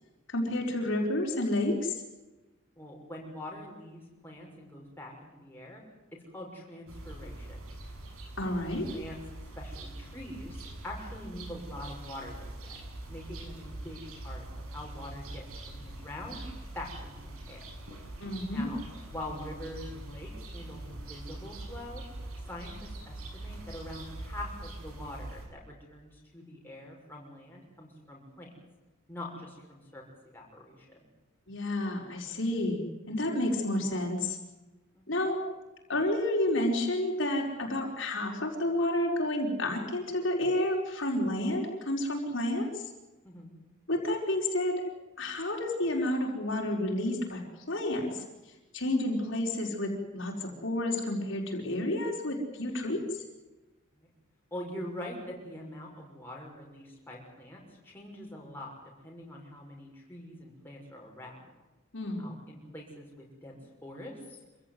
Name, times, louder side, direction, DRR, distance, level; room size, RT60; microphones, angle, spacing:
voice 1, 0.3-2.0 8.4-8.9 18.2-18.7 31.5-34.4 35.1-35.4 35.9-42.8 43.9-44.7 45.2-48.2 48.7-53.2 61.9-62.3, left 1 dB, 60° left, 0 dB, 4.8 m, -30 dB
voice 2, 2.8-5.8 6.1-7.7 8.4-8.5 8.9-16.4 16.7-17.6 18.5-18.8 19.1-22.0 22.5-28.5 29.1-31.1 34.9-35.0 43.2-43.5 54.0-54.1 54.5-58.7 59.0-61.4 62.2-64.4, left 1 dB, 10° left, -2 dB, 6.2 m, -44 dB
sound 1, 6.9-25.5, right 1 dB, 90° right, 6.5 m, -43 dB
27.0 x 16.0 x 9.5 m, 1.1 s
head